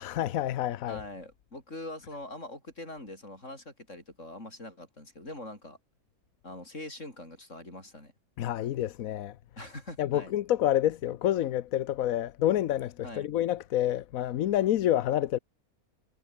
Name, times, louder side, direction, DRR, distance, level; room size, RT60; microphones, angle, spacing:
voice 1, 0.0-1.0 8.4-9.4 10.0-15.4, left 12 dB, 70° left, 1.1 m, -28 dB
voice 2, 0.9-5.8 6.4-8.1 9.6-10.3 13.0-13.3, left 1 dB, 55° left, 8.0 m, -43 dB
omnidirectional pair, 1.6 m